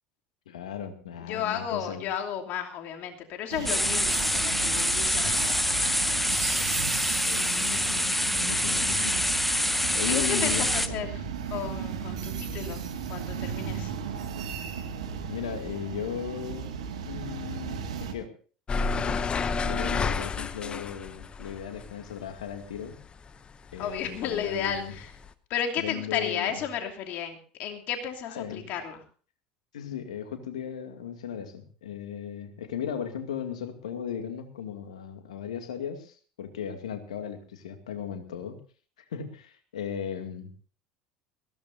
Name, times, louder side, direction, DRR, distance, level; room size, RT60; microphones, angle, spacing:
voice 1, 0.5-2.1 6.9-9.2 9.9-11.0 15.2-16.7 17.1-18.3 18.8-19.2 19.6-23.0 23.7-24.9 25.8-26.6 28.3-28.7 29.7-38.6 39.1-40.6, left 8 dB, 80° left, 6 dB, 2.3 m, -37 dB
voice 2, 1.2-6.0 10.0-11.2 11.5-12.8 13.1-13.9 23.8-25.1 25.5-29.0, left 8 dB, 55° left, 3 dB, 2.8 m, -33 dB
sound 1, 3.5-18.1, right 7 dB, 80° right, 2.0 m, -35 dB
sound 2, 3.7-10.9, left 1 dB, 5° left, 1.0 m, -26 dB
Opening and closing exterior door to garage, 18.7-23.4 23.7-25.3, left 4 dB, 30° left, 0.9 m, -30 dB
21.5 x 16.0 x 2.7 m, 0.39 s
hypercardioid pair, 70°, 4 cm